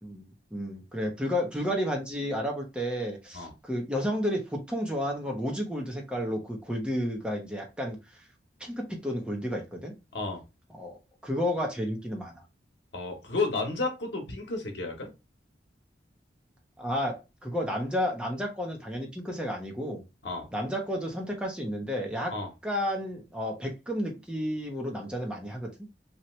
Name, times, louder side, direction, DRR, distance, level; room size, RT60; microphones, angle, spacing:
voice 1, 0.0-8.3 8.6-9.9 10.8-12.4 16.8-20.0 20.5-22.3 22.6-25.7, equal, 5° right, 0 dB, 0.7 m, -32 dB
voice 2, 12.9-15.1 20.2-20.5 22.3-22.5, left 3 dB, 80° left, 2 dB, 0.9 m, -32 dB
2.8 x 2.4 x 3.0 m, 0.26 s
head